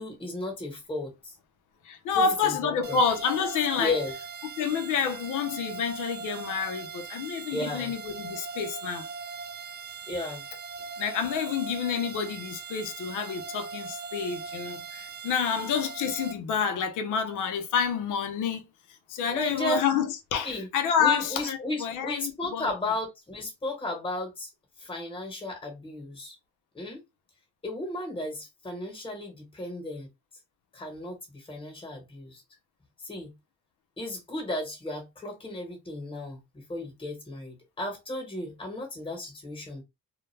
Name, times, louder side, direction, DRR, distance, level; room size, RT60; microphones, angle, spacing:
voice 1, 0.0-1.4 2.1-3.0 3.8-4.1 7.5-7.9 10.1-10.5 15.6-15.7 19.3-19.8 20.4-20.7 21.0-24.5 24.8-26.4 26.7-27.0 27.6-30.1 30.7-32.4 33.0-33.3 34.0-39.8, left 2 dB, 15° left, 1.1 m, -34 dB
voice 2, 1.8-3.9 4.6-9.1 11.0-18.6 19.1-22.7, left 6 dB, 85° left, 0.7 m, -28 dB
sound 1, 2.8-16.3, right 5 dB, 35° right, 0.5 m, -40 dB
2.3 x 2.1 x 3.1 m
cardioid pair, 90°, 30 cm